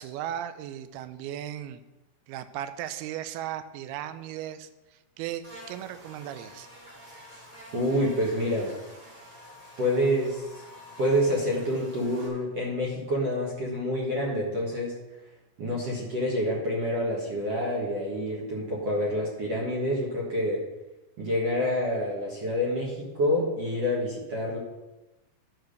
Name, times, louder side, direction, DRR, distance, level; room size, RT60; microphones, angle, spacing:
voice 1, 0.0-1.8 2.3-4.7 5.2-6.7, right 11 dB, 80° right, 11 dB, 2.4 m, -36 dB
Buzz, 5.4-12.3, equal, 25° right, 2.1 m, -48 dB
voice 2, 7.7-8.7 9.8-10.6 11.0-14.9 15.6-20.6 21.2-24.6, equal, 55° right, -3 dB, 1.9 m, -27 dB
12.0 x 5.0 x 6.5 m, 1.1 s
omnidirectional pair, 4.7 m